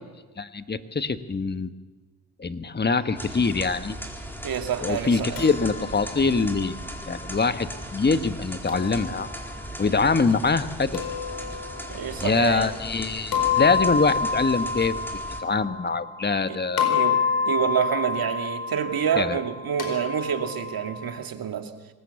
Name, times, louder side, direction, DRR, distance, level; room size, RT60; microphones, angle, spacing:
voice 1, 0.4-1.7 2.4-4.0 4.8-6.8 7.1-9.3 9.8-11.0 12.2-14.9 15.4-16.9 19.2-19.4, left 4 dB, 25° left, 10 dB, 1.5 m, -24 dB
sound 1, 3.2-15.4, equal, 5° left, 4.2 m, -38 dB
voice 2, 4.4-5.4 11.9-12.7 16.5-16.6 16.9-17.2 17.5-21.7, right 8 dB, 60° right, 6 dB, 2.5 m, -27 dB
sound 2, 5.4-7.5 8.7-9.7 10.9-12.1 13.3-16.4 16.8-21.2, left 6 dB, 60° left, 4.8 m, -29 dB
25.0 x 19.0 x 7.2 m, 1.3 s
supercardioid pair, 60°, 40 cm